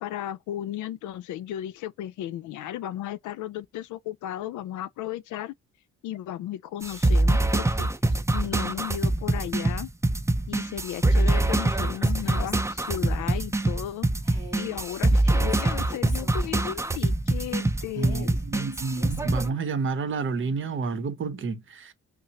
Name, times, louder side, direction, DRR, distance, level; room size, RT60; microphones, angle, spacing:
voice 1, 0.0-5.5 6.0-7.9 8.3-9.9 10.5-14.1 14.6-18.4, left 12 dB, 75° left, 0.5 m, -35 dB
sound 1, 6.8-19.5, right 2 dB, 10° right, 0.6 m, -24 dB
Female speech woman speaking, 11.2-13.3 14.2-17.1 17.9-19.8, equal, 15° left, 1.6 m, -46 dB
voice 2, 18.0-21.9, right 4 dB, 40° right, 0.8 m, -30 dB
5.5 x 2.0 x 2.9 m
cardioid pair, 90°, 30 cm